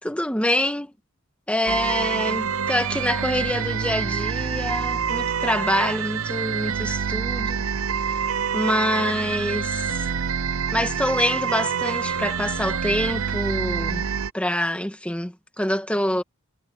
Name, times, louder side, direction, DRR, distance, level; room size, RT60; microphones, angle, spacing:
voice 1, 0.0-0.9 1.5-7.6 8.5-10.1 10.7-14.0 14.3-16.2, left 1 dB, 5° left, 1.7 m, -26 dB
sound 1, 1.7-14.3, right 6 dB, 80° right, 0.7 m, -26 dB
head